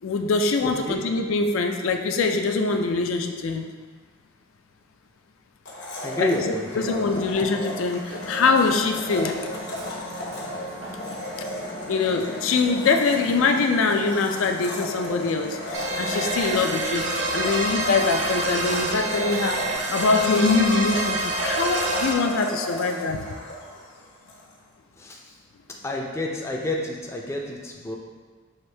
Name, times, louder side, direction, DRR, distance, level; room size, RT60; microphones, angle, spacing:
voice 1, 0.0-3.7 6.2-9.4 11.1-11.2 11.9-17.1 17.3-19.6 19.9-23.3, left 4 dB, 80° left, 5 dB, 0.4 m, -23 dB
voice 2, 0.6-1.0 6.0-7.1 25.0-25.2 25.8-28.0, left 1 dB, 15° left, -1 dB, 0.4 m, -29 dB
Domestic sounds home sounds, 5.6-24.4, left 1 dB, 60° left, 0.8 m, -34 dB
Hammer, 8.1-19.7, equal, 80° right, 1.3 m, -40 dB
sound 1, 15.7-22.1, right 2 dB, 60° right, 0.5 m, -27 dB
5.8 x 2.6 x 3.2 m, 1.5 s
head